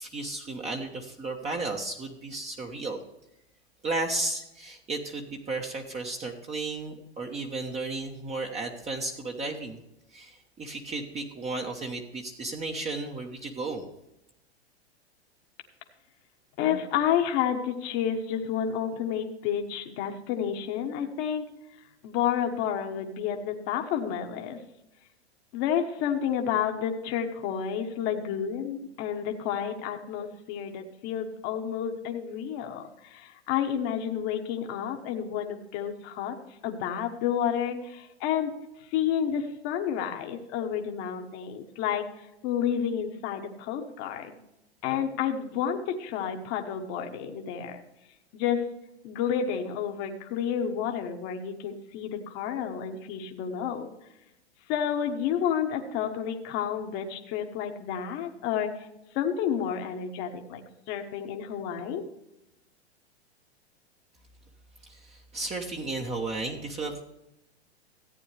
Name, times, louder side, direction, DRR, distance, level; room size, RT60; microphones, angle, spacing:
voice 1, 0.0-3.0 3.8-9.8 10.1-13.9 64.8-67.0, right 3 dB, 20° right, 1 dB, 1.1 m, -34 dB
voice 2, 16.6-21.5 22.0-24.6 25.5-36.4 36.6-44.4 44.8-47.8 48.3-48.7 49.0-53.9 54.7-58.9 59.1-60.6 60.9-62.1, left 8 dB, 40° left, 4 dB, 1.3 m, -30 dB
14.5 x 9.0 x 3.3 m, 0.89 s
hypercardioid pair, 110°, 33 cm